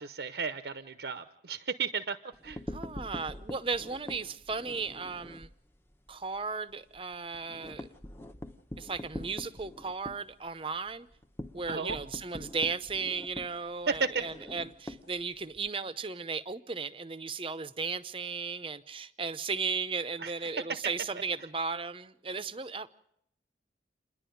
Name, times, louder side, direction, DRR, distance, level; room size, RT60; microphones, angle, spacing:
voice 1, 0.0-2.2 2.4-2.6 11.7-12.0 13.9-14.2 20.2-20.3, right 5 dB, 70° right, 0.8 m, -33 dB
sound 1, 2.3-5.5 5.9-6.1 6.4-6.5 6.8-15.7, left 1 dB, 15° left, 0.9 m, -44 dB
voice 2, 2.7-5.5 6.1-7.9 8.8-11.1 11.5-22.9, right 4 dB, 30° right, 0.7 m, -35 dB
28.5 x 11.0 x 9.3 m
head